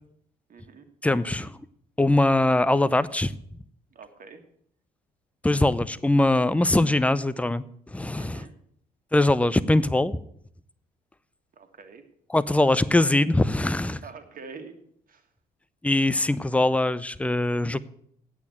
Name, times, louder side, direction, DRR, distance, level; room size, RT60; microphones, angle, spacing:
voice 1, 0.5-0.9 3.9-4.4 8.1-8.5 11.5-12.0 14.0-14.7 15.1-15.3, right 5 dB, 45° right, 6 dB, 1.8 m, -45 dB
voice 2, 1.0-1.5 2.0-3.4 5.4-8.5 9.1-10.2 12.3-14.0 15.8-17.8, left 2 dB, 5° left, 15 dB, 0.6 m, -22 dB
8.5 x 8.3 x 8.3 m, 0.65 s
figure-of-eight pair, 45°, 20 cm